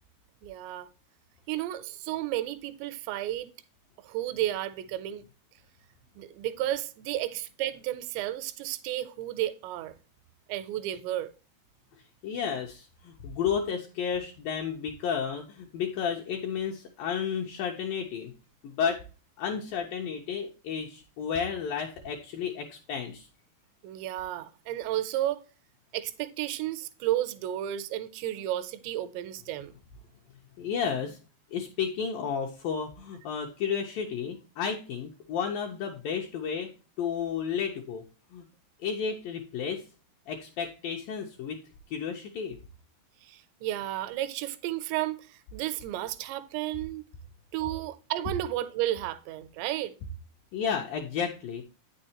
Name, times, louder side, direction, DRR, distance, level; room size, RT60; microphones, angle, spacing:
voice 1, 0.4-0.9 1.5-3.5 4.0-5.2 6.2-9.9 10.5-11.3 23.8-25.4 25.9-29.7 43.2-47.0 47.5-49.9, right 13 dB, 85° right, 2.9 m, -32 dB
voice 2, 12.2-18.3 18.6-19.0 19.4-23.3 30.6-31.2 31.5-38.0 38.3-38.5 38.8-39.8 40.3-41.6 41.9-42.6 50.5-51.6, left 7 dB, 75° left, 2.1 m, -32 dB
9.0 x 6.6 x 2.8 m
omnidirectional pair, 5.0 m